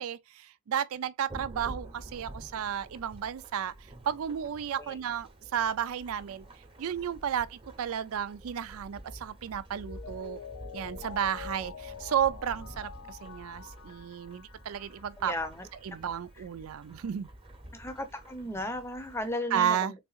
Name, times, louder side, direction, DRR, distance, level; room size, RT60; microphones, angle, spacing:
voice 1, 0.0-3.7 4.1-6.5 6.8-10.4 10.7-15.3 15.8-17.3 19.5-19.9, right 9 dB, 75° right, 0.4 m, -33 dB
Thunderstorm / Rain, 1.3-19.3, right 1 dB, 25° right, 0.9 m, -49 dB
Mallet percussion, 9.7-15.2 15.6-15.7, left 8 dB, 80° left, 0.4 m, -46 dB
voice 2, 15.2-15.7 17.7-19.9, left 1 dB, 10° left, 0.7 m, -35 dB
4.0 x 3.6 x 2.4 m
head